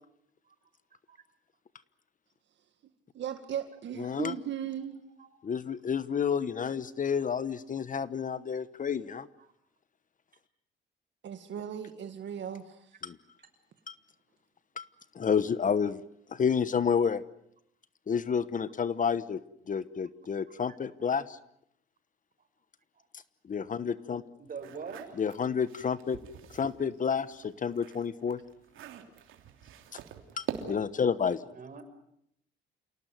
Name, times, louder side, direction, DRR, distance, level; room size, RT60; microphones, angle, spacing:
voice 1, 3.1-5.0 11.2-12.9, right 9 dB, 65° right, 7 dB, 2.1 m, -37 dB
voice 2, 4.0-4.3 5.4-9.3 13.0-13.2 13.9-14.0 14.8-14.9 15.1-16.0 16.3-17.2 18.1-19.4 19.7-21.4 23.5-24.2 25.2-26.2 26.5-28.4 29.9-30.0 30.4-31.4, left 6 dB, 40° left, 15 dB, 1.2 m, -30 dB
voice 3, 24.4-25.2 31.5-31.8, right 5 dB, 45° right, 7 dB, 6.2 m, -43 dB
sound 1, 24.5-26.8 27.2-31.0, right 9 dB, 85° right, 3.1 m, -44 dB
28.0 x 18.5 x 9.4 m, 0.74 s
cardioid pair, 90°, 20 cm